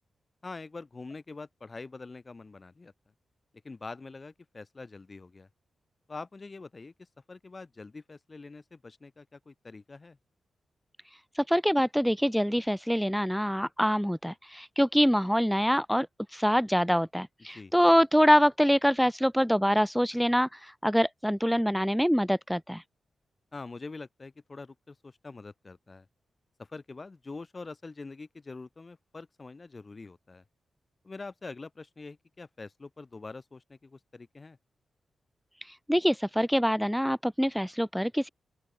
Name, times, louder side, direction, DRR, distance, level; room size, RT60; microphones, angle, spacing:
voice 1, 0.4-2.9 3.6-5.5 6.1-6.9 7.3-10.2 17.5-17.7 23.5-26.1 26.6-30.4 31.0-34.6, left 3 dB, 30° left, 3.3 m, -44 dB
voice 2, 11.3-22.8 35.6-38.3, equal, ahead, 0.3 m, -25 dB
open air
wide cardioid pair, 110°, 0 cm